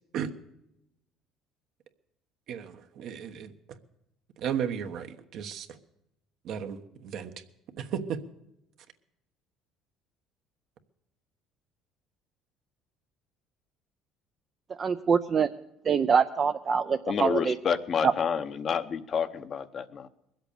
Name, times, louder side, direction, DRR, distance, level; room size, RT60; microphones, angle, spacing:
voice 1, 2.5-3.5 4.4-5.7 6.4-7.3 7.8-8.2, right 8 dB, 60° right, 7 dB, 1.2 m, -34 dB
voice 2, 14.8-15.5 15.8-17.5 18.0-18.1, right 6 dB, 30° right, 7 dB, 0.5 m, -24 dB
voice 3, 17.1-20.1, left 7 dB, 40° left, 11 dB, 0.8 m, -29 dB
21.5 x 8.1 x 6.6 m, 0.85 s
cardioid pair, 135°, 0 cm